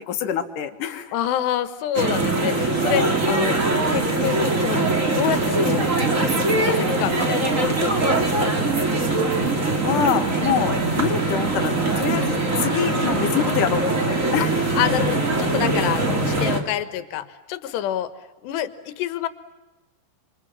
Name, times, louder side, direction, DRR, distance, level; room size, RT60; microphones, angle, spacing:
voice 1, 0.0-1.1 9.8-14.6, left 9 dB, 60° left, 8 dB, 2.7 m, -26 dB
voice 2, 1.1-3.6 3.9-4.9 5.2-5.9 6.2-8.4 14.8-18.1 18.4-19.3, left 11 dB, 80° left, 12 dB, 3.5 m, -27 dB
sound 1, 1.9-16.6, right 2 dB, 20° right, 2.4 m, -22 dB
27.5 x 25.5 x 7.5 m, 1.1 s
omnidirectional pair, 4.9 m